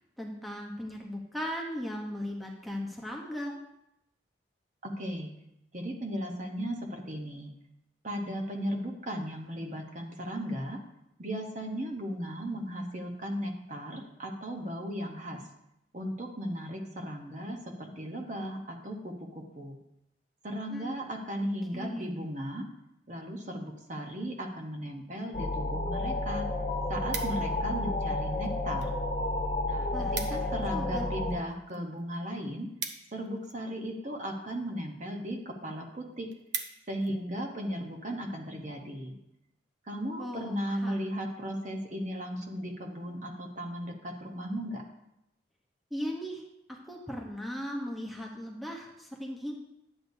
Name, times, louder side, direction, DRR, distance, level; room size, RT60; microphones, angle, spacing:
voice 1, 0.2-3.5 20.7-20.9 21.7-22.2 29.9-31.1 40.2-41.0 45.9-46.4 46.7-49.5, equal, ahead, -1 dB, 0.8 m, -38 dB
voice 2, 4.8-5.3 5.7-7.5 8.0-10.8 11.2-15.4 15.9-19.8 20.4-22.7 23.1-26.5 26.9-29.0 29.6-32.7 33.1-36.3 36.9-39.2 39.8-44.8, equal, 40° right, 3 dB, 0.9 m, -36 dB
sound 1, 25.3-31.4, left 2 dB, 40° left, 1.0 m, -31 dB
sound 2, 25.9-26.0 26.3-27.7 28.4-28.9 29.2-29.4 29.6-29.7 29.9-30.6 30.9-33.8 34.5-34.8 35.3-35.4 35.8-35.9 36.1-37.1 37.6-37.8, right 6 dB, 70° right, 0.8 m, -40 dB
10.0 x 8.0 x 2.7 m, 0.84 s
head